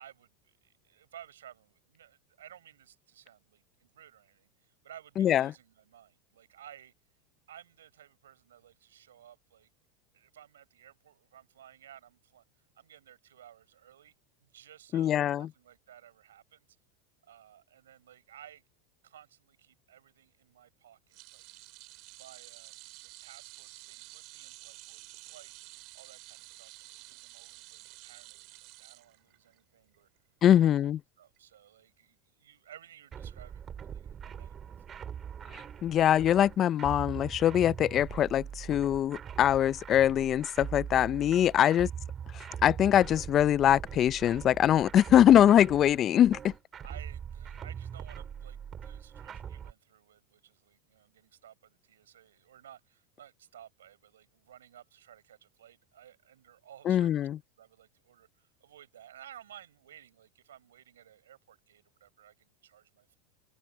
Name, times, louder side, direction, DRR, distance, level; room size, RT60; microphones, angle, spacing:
voice 1, 0.0-6.9 7.5-9.7 10.1-12.4 12.7-14.1 14.4-16.7 17.2-18.6 19.0-21.5 22.2-22.7 23.0-25.6 25.9-30.1 30.5-30.9 31.2-34.7 41.6-41.8 42.4-42.5 46.8-57.3 57.6-63.2, right 10 dB, 90° right, 5.6 m, -55 dB
voice 2, 5.2-5.5 14.9-15.5 30.4-31.0 35.8-41.9 42.3-46.5 56.9-57.4, left 11 dB, 40° left, 0.5 m, -23 dB
sound 1, 21.1-29.6 29.9-30.2 31.4-31.5, right 23 dB, 60° right, 3.0 m, -51 dB
sound 2, 33.1-49.7, right 8 dB, 30° right, 3.1 m, -42 dB
open air
hypercardioid pair, 105°, 0 cm